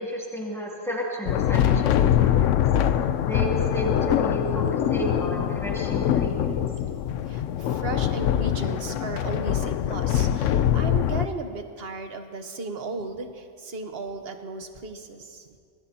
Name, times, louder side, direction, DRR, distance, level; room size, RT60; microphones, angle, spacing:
voice 1, 0.0-2.6 3.3-6.6, right 1 dB, ahead, -4 dB, 2.5 m, -32 dB
sound 1, 1.3-11.3, left 10 dB, 80° left, 0.9 m, -23 dB
voice 2, 7.2-15.5, right 3 dB, 55° right, 6 dB, 1.3 m, -35 dB
25.5 x 19.5 x 2.8 m, 2.2 s
omnidirectional pair, 1.3 m